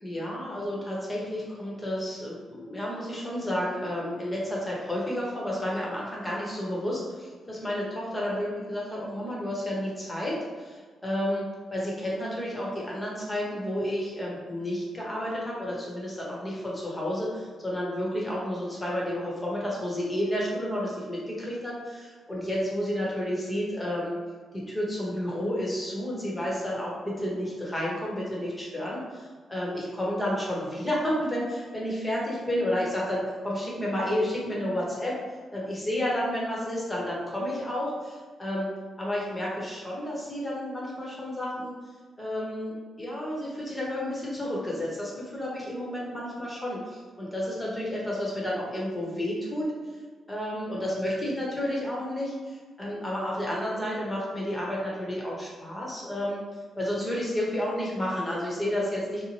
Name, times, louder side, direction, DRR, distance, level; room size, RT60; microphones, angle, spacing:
voice 1, 0.0-24.2 24.5-35.2 35.5-38.7 39.0-41.7 42.2-49.7 50.3-56.5 56.8-59.3, left 1 dB, 20° left, -4 dB, 1.0 m, -31 dB
2.7 x 2.1 x 3.0 m, 1.5 s
supercardioid pair, 60°, 0 cm